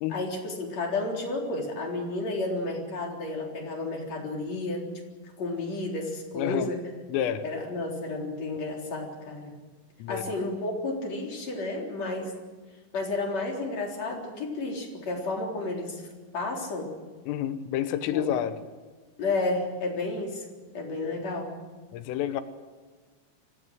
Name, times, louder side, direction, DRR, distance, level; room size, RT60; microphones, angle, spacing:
voice 1, 0.1-4.9 5.4-6.8 7.4-9.6 10.1-12.3 12.9-16.1 16.3-16.9 18.1-18.3 19.2-20.5 20.7-21.5, left 2 dB, 35° left, 0 dB, 4.5 m, -31 dB
voice 2, 6.4-6.7 7.1-7.4 10.0-10.2 17.3-18.6 21.9-22.4, left 11 dB, 85° left, 11 dB, 3.7 m, -29 dB
25.0 x 17.0 x 7.9 m, 1.4 s
omnidirectional pair, 5.7 m